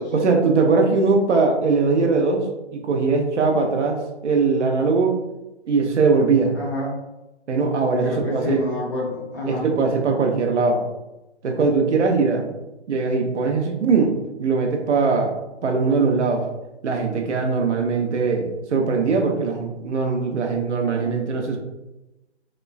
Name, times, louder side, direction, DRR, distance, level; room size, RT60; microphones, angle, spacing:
voice 1, 0.1-5.2 5.7-6.5 7.5-8.6 9.5-10.9 11.4-12.5 12.9-15.3 15.6-16.4 16.8-21.6, right 4 dB, 85° right, 3 dB, 0.7 m, -21 dB
voice 2, 6.5-6.9 8.0-9.7, left 1 dB, 15° left, -10 dB, 0.6 m, -27 dB
2.9 x 2.2 x 2.3 m, 0.99 s
hypercardioid pair, 165°, 35 cm